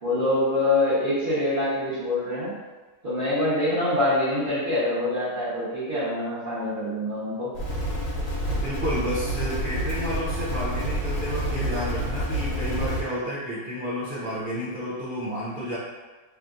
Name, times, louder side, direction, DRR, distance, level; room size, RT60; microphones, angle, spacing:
voice 1, 0.0-2.5 3.0-7.5, left 1 dB, 35° right, -15 dB, 1.1 m, -25 dB
sound 1, 7.5-13.0, equal, 55° left, 1.3 m, -28 dB
voice 2, 8.6-15.8, equal, 70° right, -9 dB, 0.5 m, -31 dB
3.4 x 2.6 x 2.5 m, 1.3 s
omnidirectional pair, 1.8 m